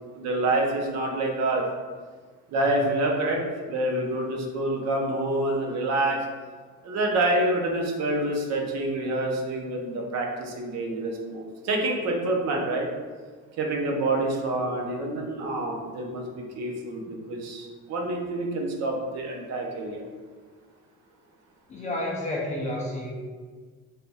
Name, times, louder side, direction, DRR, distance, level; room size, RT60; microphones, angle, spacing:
voice 1, 0.1-1.6 2.5-3.4 3.7-6.2 6.8-12.9 13.6-20.0, right 2 dB, 55° right, 0 dB, 0.7 m, -27 dB
voice 2, 21.7-23.1, left 1 dB, 25° left, -3 dB, 0.4 m, -30 dB
3.3 x 2.3 x 4.0 m, 1.5 s
cardioid pair, 175°, 32 cm